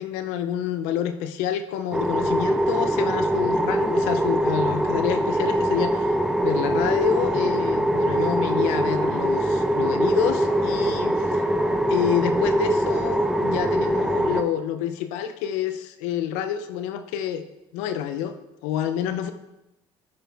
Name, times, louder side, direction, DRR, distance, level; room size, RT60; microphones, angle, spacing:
voice 1, 0.0-6.1 6.4-11.4 11.9-17.4 17.7-18.4 18.6-19.3, left 9 dB, 85° left, 9 dB, 0.8 m, -28 dB
sound 1, 1.9-14.4, right 1 dB, 5° right, 0.9 m, -23 dB
12.5 x 6.2 x 3.5 m, 0.96 s
supercardioid pair, 80°, 12 cm